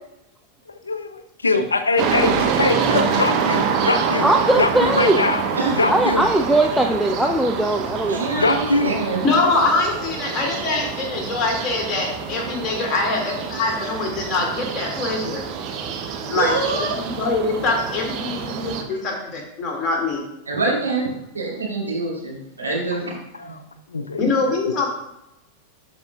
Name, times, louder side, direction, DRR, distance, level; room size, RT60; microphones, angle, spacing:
voice 1, 0.7-4.3 4.6-5.4 5.7-6.3 8.4-9.0 22.9-23.0 23.3-23.6 23.9-24.5, left 3 dB, 75° left, 10 dB, 0.5 m, -22 dB
sound 1, 2.0-18.8, right 6 dB, 40° right, 0.8 m, -26 dB
voice 2, 4.2-5.2 5.9-8.2, right 1 dB, ahead, 2 dB, 0.4 m, -19 dB
voice 3, 8.1-9.2 16.3-17.0 20.5-21.1 21.3-23.1 23.5-23.6, right 3 dB, 80° right, -4 dB, 2.4 m, -25 dB
voice 4, 9.2-15.4 16.3-20.2 24.2-24.9, left 3 dB, 30° left, -1 dB, 2.2 m, -23 dB
12.0 x 5.1 x 2.4 m, 0.86 s
figure-of-eight pair, 90°, 0 cm